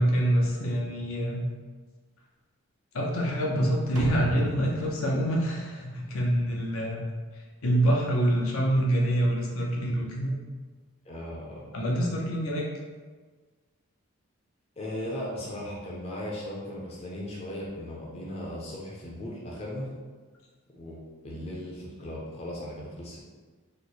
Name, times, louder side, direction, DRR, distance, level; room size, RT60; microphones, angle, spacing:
voice 1, 0.0-1.4 2.9-7.0 7.3-10.3 11.7-12.7, right 1 dB, 70° left, -2 dB, 0.6 m, -26 dB
sound 1, 4.0-6.5, equal, 90° right, 0.6 m, -34 dB
voice 2, 11.1-11.7 14.8-19.9 20.7-23.2, left 1 dB, 30° left, -5 dB, 0.5 m, -37 dB
3.1 x 2.1 x 4.1 m, 1.4 s
head